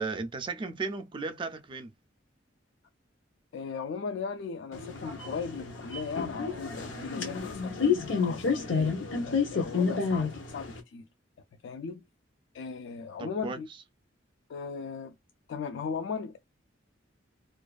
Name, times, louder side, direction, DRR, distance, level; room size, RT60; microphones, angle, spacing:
voice 1, 0.0-1.9 13.2-13.6, right 4 dB, 25° right, 0.3 m, -35 dB
voice 2, 3.5-7.8 8.2-11.1 11.6-12.0 12.5-13.7 14.5-15.2 15.5-16.4, left 5 dB, 75° left, 0.3 m, -37 dB
sound 1, 4.7-10.8, left 5 dB, 90° left, 0.7 m, -30 dB
2.4 x 2.2 x 2.3 m
head